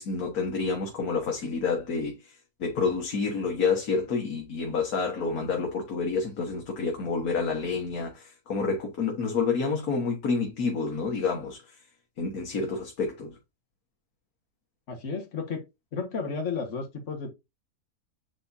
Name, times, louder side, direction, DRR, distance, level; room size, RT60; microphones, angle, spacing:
voice 1, 0.0-11.8 12.2-13.4, left 4 dB, 75° left, 2.0 m, -29 dB
voice 2, 14.9-15.6 15.9-17.3, left 5 dB, 55° left, 1.8 m, -32 dB
8.7 x 4.2 x 2.7 m
omnidirectional pair, 1.6 m